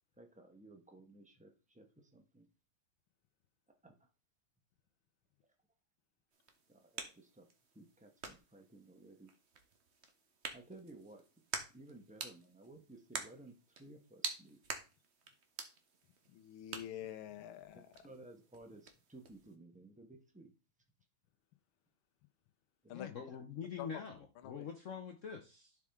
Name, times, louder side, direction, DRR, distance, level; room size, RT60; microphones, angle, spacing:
voice 1, 0.2-2.5 3.8-3.9 6.7-7.5 7.7-9.3 10.5-11.2 11.7-14.6 17.7-20.5 22.8-22.9, right 2 dB, 5° right, 4 dB, 0.7 m, -57 dB
sound 1, 6.3-19.6, right 4 dB, 40° right, 1.0 m, -49 dB
voice 2, 16.3-18.1 22.9-23.1 23.8-23.9 24.4-24.7, left 11 dB, 80° left, 10 dB, 1.6 m, -47 dB
voice 3, 22.9-25.8, left 7 dB, 65° left, 5 dB, 0.7 m, -45 dB
11.0 x 4.8 x 3.6 m, 0.31 s
omnidirectional pair, 2.3 m